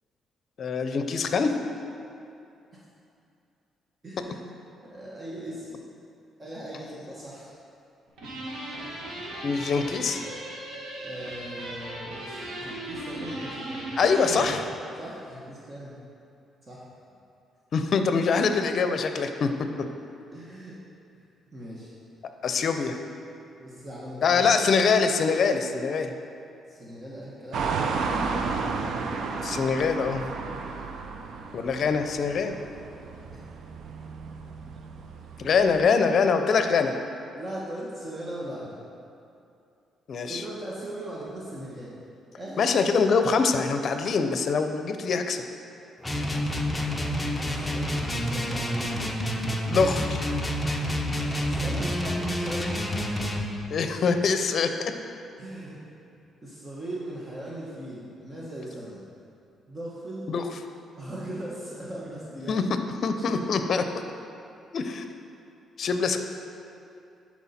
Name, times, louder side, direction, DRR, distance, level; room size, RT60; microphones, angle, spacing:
voice 1, 0.6-1.5 9.4-10.2 14.0-14.6 17.7-19.5 22.4-22.9 24.2-26.1 29.4-30.3 31.5-32.6 35.4-37.0 40.1-40.4 42.6-45.4 49.7-50.3 53.7-54.9 60.3-60.4 62.5-62.6 63.0-63.8 64.7-65.0 65.8-66.2, left 5 dB, 55° left, 7 dB, 0.6 m, -24 dB
voice 2, 4.0-4.5 4.8-5.9 6.4-7.5 8.8-9.0 11.0-13.9 14.3-14.6 15.0-16.0 16.6-16.9 20.3-20.8 21.1-21.2 21.5-22.0 22.5-22.9 23.6-24.4 26.6-27.7 37.3-38.8 40.2-41.9 42.3-42.9 46.2-46.7 47.3-49.0 51.5-52.7 55.4-55.8 56.1-59.0 59.7-60.2 61.0-62.6 63.2-63.4, right 1 dB, 30° right, -6 dB, 1.3 m, -39 dB
sound 1, 8.2-14.5, right 1 dB, 90° right, 1.7 m, -37 dB
sound 2, 27.5-35.9, right 4 dB, 70° right, 0.5 m, -33 dB
sound 3, 46.0-53.5, equal, 10° left, 0.8 m, -28 dB
11.0 x 4.5 x 4.3 m, 2.6 s
cardioid pair, 90°, 0 cm